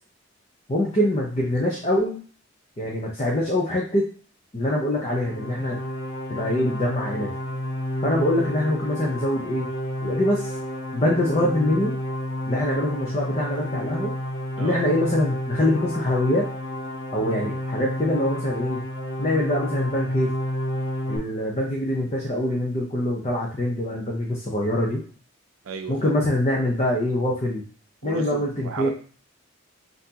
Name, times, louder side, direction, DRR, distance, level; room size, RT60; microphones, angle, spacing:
voice 1, 0.7-2.2 2.8-4.0 4.5-5.8 6.3-7.3 8.0-9.7 10.0-10.5 10.9-11.9 12.5-14.1 14.6-16.4 17.1-18.8 19.2-20.3 21.1-25.0 25.9-27.6 28.0-28.9, left 1 dB, 30° left, -3 dB, 0.7 m, -24 dB
sound 1, 4.9-21.2, equal, 55° left, 1.0 m, -30 dB
voice 2, 25.6-26.1 28.0-28.9, right 5 dB, 85° right, 5 dB, 0.5 m, -34 dB
5.7 x 2.8 x 2.9 m, 0.41 s
head